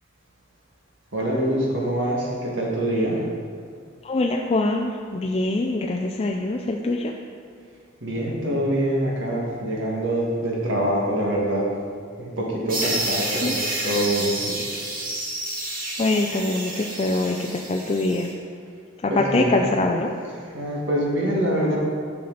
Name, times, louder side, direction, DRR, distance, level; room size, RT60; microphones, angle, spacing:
voice 1, 1.1-3.2 8.0-11.7 12.2-14.6 19.1-19.6 20.3-21.8, right 1 dB, 75° right, -3 dB, 1.9 m, -25 dB
voice 2, 4.0-7.1 13.4-13.6 16.0-18.3 19.0-20.1, left 2 dB, 30° left, 1 dB, 0.4 m, -24 dB
sound 1, 12.7-18.3, right 2 dB, 45° right, 1.7 m, -29 dB
11.0 x 5.7 x 4.0 m, 2.1 s
head